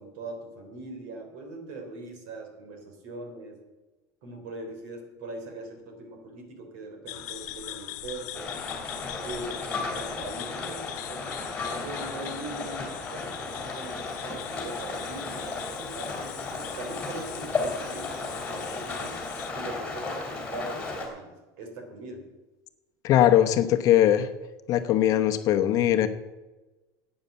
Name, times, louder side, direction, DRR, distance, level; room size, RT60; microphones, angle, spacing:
voice 1, 0.0-3.6 4.2-8.6 9.2-11.4 11.7-19.2 19.5-22.3, right 2 dB, 65° right, 5 dB, 3.6 m, -41 dB
sound 1, 7.1-19.5, left 15 dB, 90° left, 1.0 m, -41 dB
Rain, 8.3-21.1, left 3 dB, 10° left, 3.4 m, -34 dB
voice 2, 23.0-24.3 24.7-26.1, left 12 dB, 40° left, 7 dB, 0.9 m, -20 dB
11.0 x 8.9 x 8.1 m, 1.1 s
cardioid pair, 165°, 9 cm